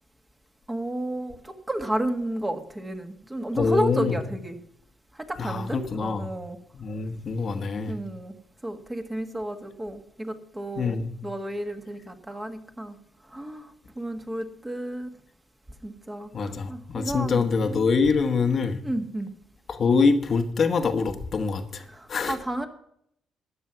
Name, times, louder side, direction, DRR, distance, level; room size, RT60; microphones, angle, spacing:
voice 1, 0.7-4.6 5.2-6.6 7.9-8.4 8.6-13.0 13.3-15.1 15.8-17.4 17.7-18.1 18.8-19.3 21.9-22.7, right 1 dB, 15° right, 5 dB, 1.9 m, -32 dB
voice 2, 3.6-4.1 5.4-6.3 6.7-8.0 10.8-11.1 16.3-18.8 19.7-21.8 22.1-22.4, left 4 dB, 50° left, 6 dB, 1.2 m, -24 dB
14.0 x 9.1 x 5.8 m, 0.70 s
cardioid pair, 90°, 0 cm